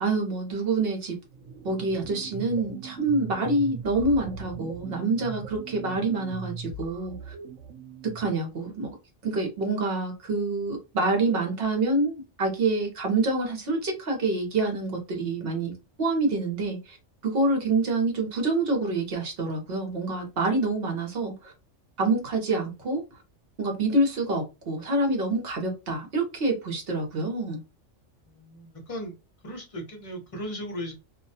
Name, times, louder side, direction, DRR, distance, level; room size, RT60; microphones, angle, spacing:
voice 1, 0.0-1.1 1.6-7.3 8.1-8.9 9.2-17.0 17.2-21.5 22.0-23.0 23.6-27.6, right 2 dB, 55° right, 0.9 m, -27 dB
sound 1, 1.2-8.4, right 6 dB, 80° right, 0.9 m, -40 dB
voice 2, 28.2-29.1 29.4-30.9, equal, 35° left, 0.6 m, -37 dB
2.3 x 2.2 x 2.6 m
omnidirectional pair, 1.3 m